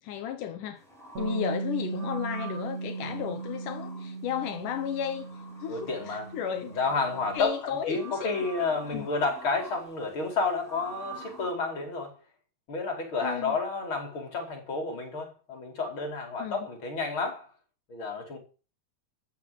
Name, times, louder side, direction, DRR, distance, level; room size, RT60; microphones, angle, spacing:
voice 1, 0.0-0.8 1.2-5.3 5.6-6.8 7.3-8.5 8.9-9.1 13.2-13.6 16.4-16.7, left 9 dB, 80° left, 2.7 m, -34 dB
sound 1, 0.8-11.5, right 3 dB, ahead, 6.3 m, -48 dB
Bass guitar, 1.2-7.4, right 4 dB, 55° right, 4.6 m, -37 dB
voice 2, 5.7-6.3 6.8-12.2 12.7-17.5 17.9-18.4, left 4 dB, 40° left, 5.3 m, -31 dB
13.5 x 7.3 x 9.2 m
omnidirectional pair, 3.7 m